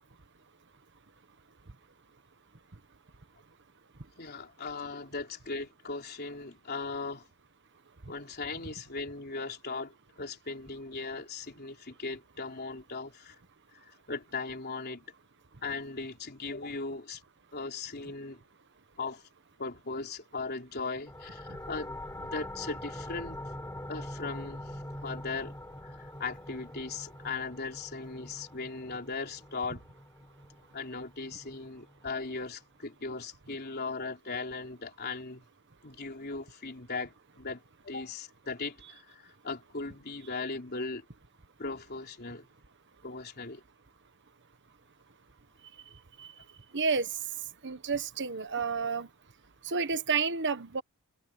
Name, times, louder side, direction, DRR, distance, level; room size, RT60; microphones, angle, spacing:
voice 1, 4.2-7.3 8.1-13.4 13.8-15.0 15.6-17.2 17.5-18.4 19.0-19.2 19.6-23.4 23.9-25.6 25.8-29.8 30.7-35.5 35.8-41.1 41.6-42.5 43.0-43.6, left 3 dB, 45° left, 3.8 m, -38 dB
sound 1, 21.1-32.4, left 1 dB, 15° left, 4.7 m, -44 dB
voice 2, 46.7-47.1 47.6-49.1 49.6-50.8, right 5 dB, 55° right, 1.4 m, -30 dB
head